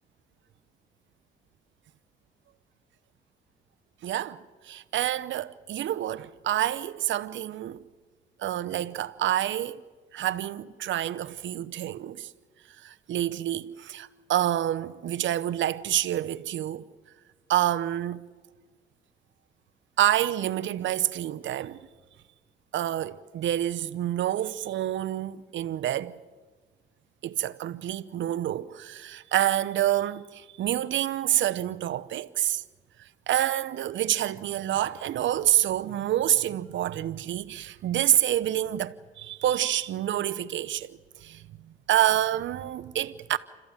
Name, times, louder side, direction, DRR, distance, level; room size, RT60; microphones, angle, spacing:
voice 1, 4.0-4.4 4.6-7.8 8.4-9.8 10.1-12.3 12.8-16.9 17.5-18.2 20.0-21.8 22.7-26.2 27.2-32.6 33.3-41.4 41.9-43.4, right 12 dB, 70° right, 0.9 m, -27 dB
28.5 x 14.0 x 8.9 m
cardioid pair, 90°, 20 cm